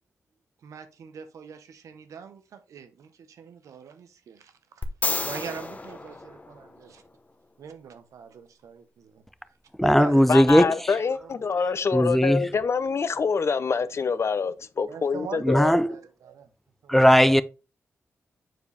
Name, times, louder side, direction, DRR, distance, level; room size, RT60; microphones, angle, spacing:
voice 1, 0.6-4.8 5.2-7.0 7.6-9.2 9.8-10.4 11.0-11.5 14.9-16.5 16.8-17.0, right 7 dB, 85° right, 0.9 m, -42 dB
sound 1, 4.8-7.1 10.5-10.6, left 2 dB, 30° left, 1.0 m, -32 dB
voice 2, 9.8-10.7 11.9-12.4 15.4-15.9 16.9-17.4, equal, 5° left, 0.5 m, -18 dB
voice 3, 10.3-15.7, left 5 dB, 55° left, 0.6 m, -26 dB
7.5 x 4.7 x 3.4 m
cardioid pair, 55°, 5 cm